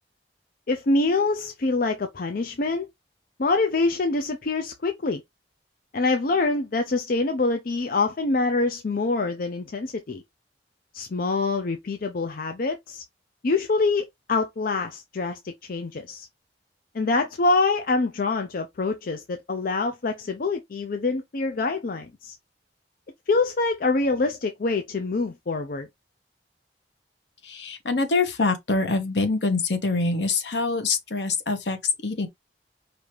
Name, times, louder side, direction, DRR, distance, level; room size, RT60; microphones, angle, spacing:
voice 1, 0.7-2.9 3.4-5.2 5.9-10.2 10.9-13.0 13.4-16.3 16.9-22.4 23.3-25.9, left 3 dB, 55° left, 0.5 m, -25 dB
voice 2, 27.4-32.3, left 3 dB, 75° left, 1.1 m, -25 dB
5.0 x 2.7 x 3.0 m
head